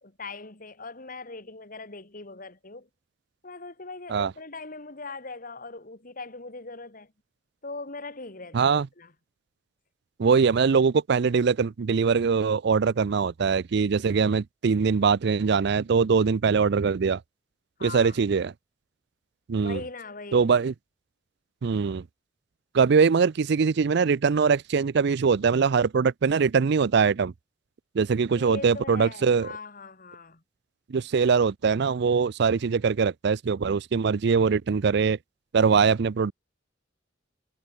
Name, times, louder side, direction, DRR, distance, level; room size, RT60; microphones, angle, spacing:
voice 1, 0.0-2.9 3.4-7.1 7.6-9.1 17.8-18.2 19.6-20.5 28.3-30.4, left 3 dB, 45° left, 2.7 m, -40 dB
voice 2, 8.5-8.9 10.2-17.2 17.8-18.5 19.5-19.8 20.3-20.7 21.6-22.0 22.7-27.3 27.9-29.5 30.9-35.2 35.5-36.3, right 5 dB, 60° right, 0.4 m, -22 dB
head